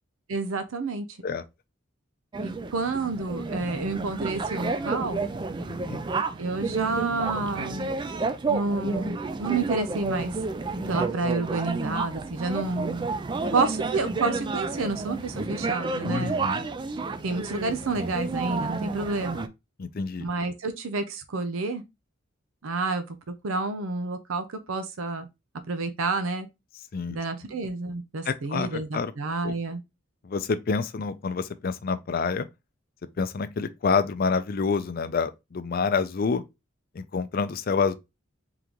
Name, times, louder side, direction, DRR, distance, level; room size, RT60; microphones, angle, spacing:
voice 1, 0.3-1.2 2.4-5.2 6.4-8.0 8.5-10.4 10.9-13.1 13.5-16.4 17.2-19.4 20.2-21.8 22.6-23.2 23.4-25.3 25.7-26.5 27.1-29.8, right 3 dB, 80° right, 0.6 m, -29 dB
sound 1, 2.3-19.5, right 3 dB, 20° right, 0.3 m, -31 dB
voice 2, 5.7-6.0 12.5-12.6 16.0-16.7 19.8-20.3 26.9-27.2 28.2-29.1 29.4-29.5 30.2-32.5 33.2-36.4 37.0-37.9, left 5 dB, 45° left, 0.4 m, -28 dB
3.8 x 3.6 x 2.9 m
head